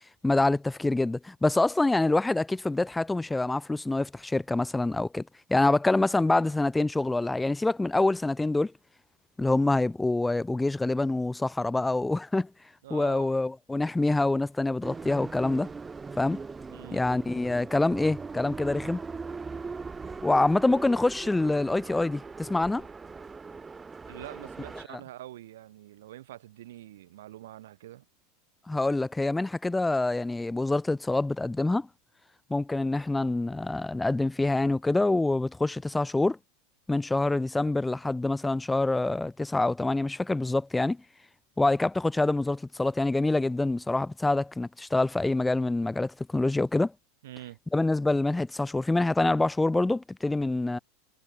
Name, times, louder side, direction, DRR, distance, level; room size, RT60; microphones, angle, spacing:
voice 1, 0.2-5.2 5.5-8.7 9.4-12.5 12.9-15.7 16.2-16.4 16.9-19.0 20.2-22.9 24.9-25.0 28.7-31.9 32.5-36.4 36.9-41.0 41.6-46.9 47.7-50.8, left 2 dB, 10° left, 0.3 m, -26 dB
voice 2, 12.8-13.3 16.7-17.0 24.1-28.0 47.2-47.6, right 14 dB, 65° right, 1.6 m, -45 dB
sound 1, 14.8-24.8, right 4 dB, 15° right, 5.3 m, -40 dB
figure-of-eight pair, 85°, 0 cm